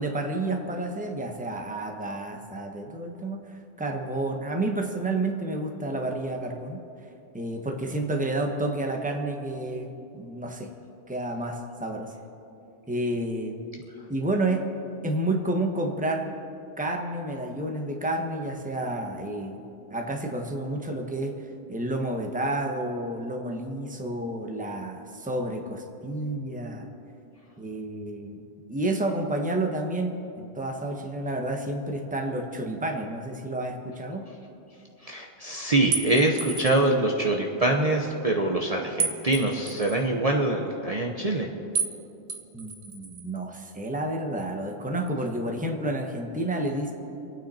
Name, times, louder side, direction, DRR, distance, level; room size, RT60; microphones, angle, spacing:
voice 1, 0.0-3.4 3.8-6.8 7.3-10.7 11.1-12.1 12.9-13.6 14.1-14.6 15.0-16.3 16.8-19.6 19.9-21.3 21.7-26.9 27.6-28.4 28.7-34.2 42.5-46.9, right 1 dB, 5° right, 3 dB, 1.1 m, -30 dB
voice 2, 35.0-41.5, right 2 dB, 35° right, 1 dB, 1.0 m, -24 dB
sound 1, 35.9-36.9 39.0-40.0 41.7-42.0 42.3-43.2, right 5 dB, 75° right, 1.3 m, -31 dB
26.0 x 9.2 x 4.3 m, 2.7 s
omnidirectional pair, 1.2 m